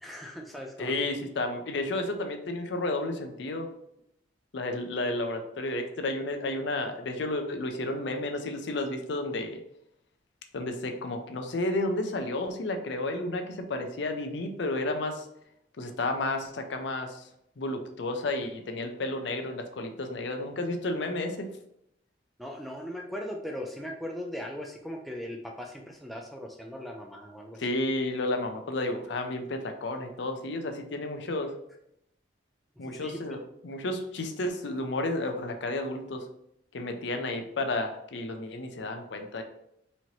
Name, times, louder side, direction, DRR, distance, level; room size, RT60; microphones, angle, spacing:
voice 1, 0.0-0.9 22.4-27.6 32.8-33.4, equal, ahead, 1 dB, 0.3 m, -39 dB
voice 2, 0.8-3.7 4.5-9.6 10.5-15.2 15.8-17.3 17.6-21.5 27.6-31.5 32.8-33.4 33.6-36.2 36.7-39.4, left 2 dB, 65° left, 5 dB, 0.5 m, -32 dB
4.2 x 2.8 x 3.0 m, 0.76 s
head